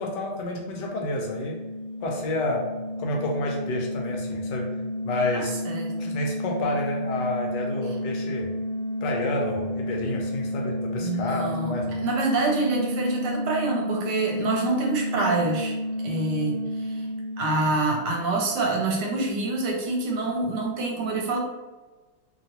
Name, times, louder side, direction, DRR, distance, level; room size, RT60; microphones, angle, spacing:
voice 1, 0.0-1.6 2.0-2.7 3.0-4.7 5.0-5.6 6.0-8.5 9.0-12.0, left 2 dB, 75° left, 0 dB, 1.2 m, -29 dB
sound 1, 0.6-18.1, left 1 dB, 50° left, 0.4 m, -31 dB
voice 2, 5.3-6.2 11.0-15.8 16.0-17.1 17.4-21.4, right 3 dB, 70° right, 0 dB, 1.1 m, -26 dB
2.9 x 2.8 x 2.8 m, 1.2 s
omnidirectional pair, 2.0 m